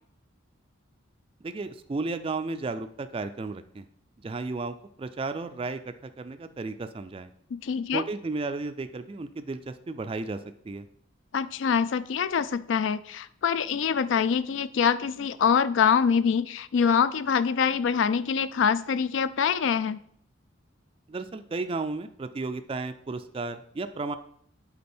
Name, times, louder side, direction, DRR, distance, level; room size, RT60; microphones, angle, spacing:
voice 1, 1.4-3.9 4.2-7.3 7.9-10.4 10.6-10.8 21.1-24.2, right 3 dB, 25° right, 9 dB, 0.3 m, -33 dB
voice 2, 7.5-8.0 11.3-20.0, left 7 dB, 65° left, 15 dB, 0.3 m, -25 dB
8.4 x 4.1 x 4.4 m, 0.65 s
head